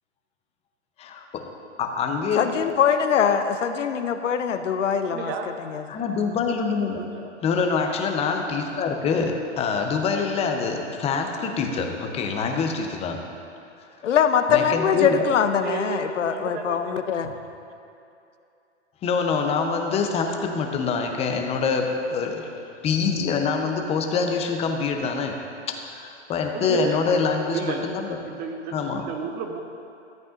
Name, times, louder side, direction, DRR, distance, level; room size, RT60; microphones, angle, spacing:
voice 1, 1.0-1.5 1.8-2.7 5.9-7.0 7.4-13.3 14.5-15.2 17.2-17.3 19.0-22.5 22.8-28.0 28.7-29.1, left 5 dB, 15° left, 4 dB, 0.7 m, -25 dB
voice 2, 2.4-5.3 5.7-5.8 14.0-17.3, left 7 dB, 90° left, 8 dB, 0.7 m, -22 dB
voice 3, 5.1-5.5 7.0-7.3 15.6-16.8 26.5-27.0 27.5-27.9 28.2-29.6, right 5 dB, 25° right, 5 dB, 0.7 m, -32 dB
13.0 x 8.5 x 2.5 m, 2.6 s
hypercardioid pair, 125°, 36 cm